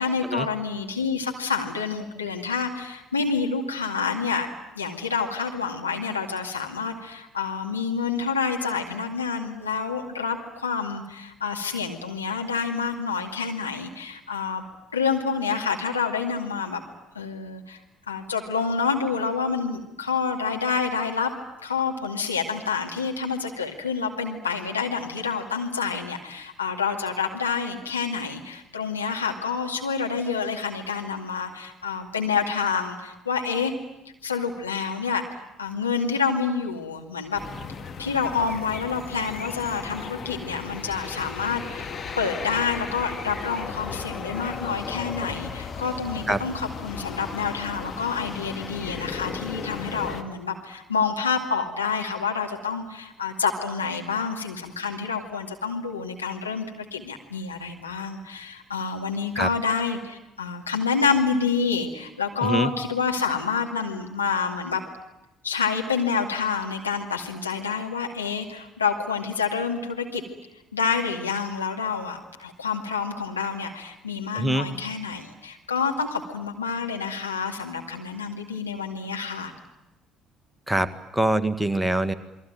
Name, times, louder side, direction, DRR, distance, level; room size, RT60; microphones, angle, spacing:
voice 1, 0.0-4.5 4.8-14.6 14.9-16.8 17.1-17.8 18.1-21.3 21.6-33.7 34.2-35.2 35.6-37.4 38.0-41.9 42.2-64.8 65.4-70.2 70.7-79.5, left 5 dB, 85° left, 2 dB, 2.3 m, -28 dB
sound 1, 37.3-50.2, left 5 dB, 35° left, 2.3 m, -36 dB
voice 2, 74.4-74.7 80.7-82.1, right 1 dB, 5° right, 10 dB, 1.9 m, -24 dB
28.5 x 22.5 x 9.1 m, 0.92 s
figure-of-eight pair, 55°, 0 cm